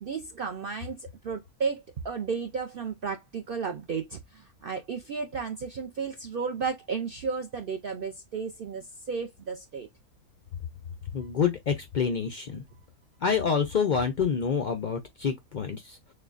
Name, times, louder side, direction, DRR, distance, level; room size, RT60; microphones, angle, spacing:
voice 1, 0.0-9.9, right 5 dB, 70° right, 0.5 m, -33 dB
voice 2, 11.1-12.6 13.2-16.0, left 6 dB, 85° left, 0.4 m, -27 dB
6.5 x 2.2 x 2.4 m
omnidirectional pair, 1.5 m